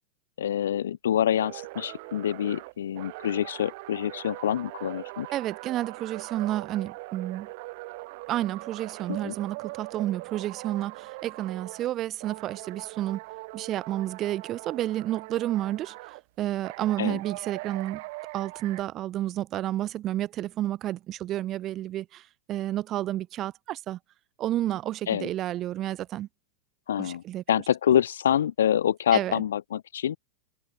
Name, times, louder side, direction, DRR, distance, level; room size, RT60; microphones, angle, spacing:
voice 1, 0.4-5.3 9.1-9.3 17.0-17.2 25.1-25.3 26.9-30.2, left 10 dB, 80° left, 0.4 m, -26 dB
sound 1, 1.4-11.9 12.2-16.2 16.6-18.8, right 24 dB, 60° right, 1.0 m, -41 dB
voice 2, 5.3-7.5 8.3-13.2 13.5-18.0 18.3-24.0 24.4-26.3 27.0-27.4 29.1-29.4, right 13 dB, 40° right, 0.7 m, -31 dB
hypercardioid pair, 110°, 0 cm